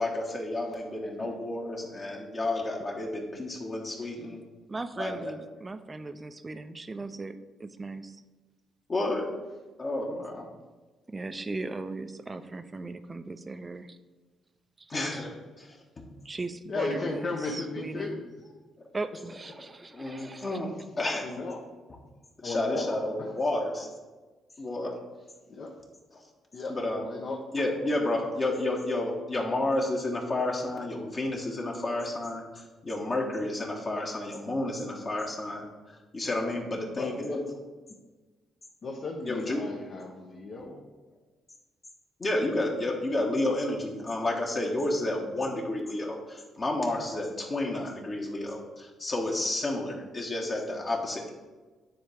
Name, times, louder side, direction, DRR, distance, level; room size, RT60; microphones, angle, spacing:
voice 1, 0.0-4.4 5.0-5.3 8.9-9.2 9.8-10.4 14.9-15.3 15.6-16.1 19.9-20.7 21.0-21.2 22.4-23.9 24.6-25.0 26.1-26.2 26.7-27.1 27.5-35.6 36.1-37.4 39.3-39.6 42.2-51.3, left 2 dB, 40° left, -2 dB, 1.2 m, -31 dB
voice 2, 4.7-8.2 11.1-14.0 14.8-15.2 16.2-18.2 18.9-20.6, right 3 dB, 30° right, 11 dB, 0.5 m, -38 dB
voice 3, 16.7-18.5 21.1-21.6 22.4-23.3 25.5-25.8 26.5-26.8 27.0-27.4 36.7-37.4 38.8-40.8, left 3 dB, 55° left, -1 dB, 0.9 m, -35 dB
9.2 x 3.6 x 3.5 m, 1.3 s
supercardioid pair, 60°, 0 cm